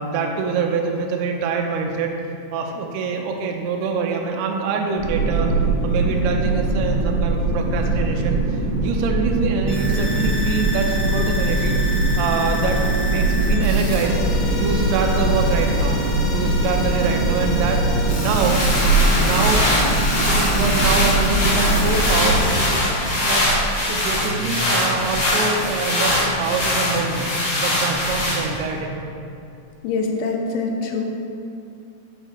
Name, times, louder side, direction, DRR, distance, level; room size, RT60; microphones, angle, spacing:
voice 1, 0.0-2.1 2.5-5.5 5.8-11.8 12.2-14.2 14.6-16.0 16.3-17.8 18.1-18.6 19.2-19.7 20.2-22.7 23.2-23.5 23.9-27.3 27.6-28.9, right 5 dB, 85° right, 2 dB, 2.3 m, -25 dB
sound 1, 5.0-22.4, right 2 dB, 65° right, 2.2 m, -22 dB
sound 2, 9.7-22.6, left 1 dB, 70° left, 2.5 m, -28 dB
sound 3, 18.0-28.7, left 1 dB, 55° left, 1.9 m, -21 dB
voice 2, 29.8-31.1, left 3 dB, 90° left, 1 dB, 3.0 m, -24 dB
7.1 x 4.8 x 4.1 m, 2.6 s
omnidirectional pair, 5.2 m